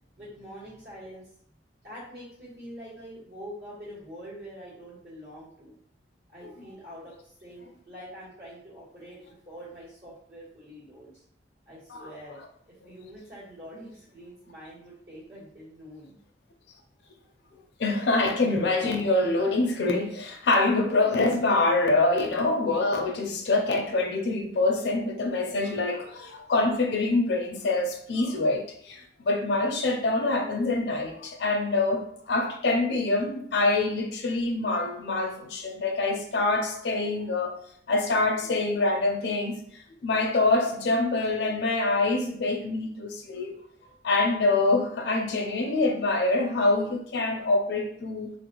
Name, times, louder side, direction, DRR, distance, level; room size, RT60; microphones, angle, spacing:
voice 1, 0.1-1.3 1.8-5.7 6.3-11.2 11.7-12.4 12.6-16.2, equal, 60° right, -10 dB, 1.2 m, -45 dB
voice 2, 17.8-37.6 37.9-43.5 44.0-48.3, left 2 dB, 65° left, 3 dB, 0.4 m, -25 dB
2.5 x 2.1 x 2.8 m, 0.65 s
head